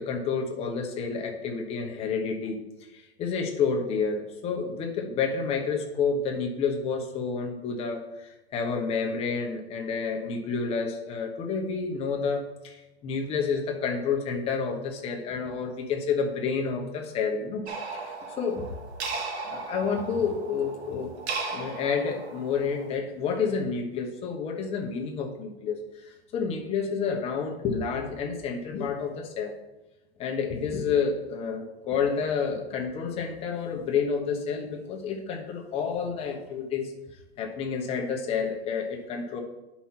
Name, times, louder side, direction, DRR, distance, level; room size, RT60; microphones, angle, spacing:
voice 1, 0.0-2.6 2.9-17.6 17.9-18.7 19.4-21.1 21.5-25.8 26.0-29.6 30.2-36.9 37.4-39.4, left 5 dB, 20° left, 2 dB, 1.0 m, -29 dB
sound 1, 17.7-22.9, right 4 dB, 85° right, 2.3 m, -36 dB
9.9 x 5.7 x 4.4 m, 0.97 s
supercardioid pair, 165°, 32 cm